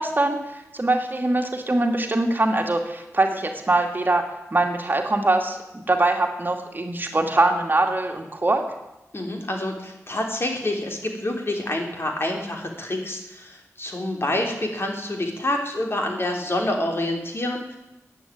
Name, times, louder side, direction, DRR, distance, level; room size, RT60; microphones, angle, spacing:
voice 1, 0.0-8.6, right 2 dB, 35° right, 3 dB, 2.3 m, -23 dB
voice 2, 9.1-17.8, left 1 dB, 45° left, 2 dB, 3.4 m, -27 dB
15.0 x 9.3 x 9.4 m, 0.97 s
wide cardioid pair, 75°, 6 cm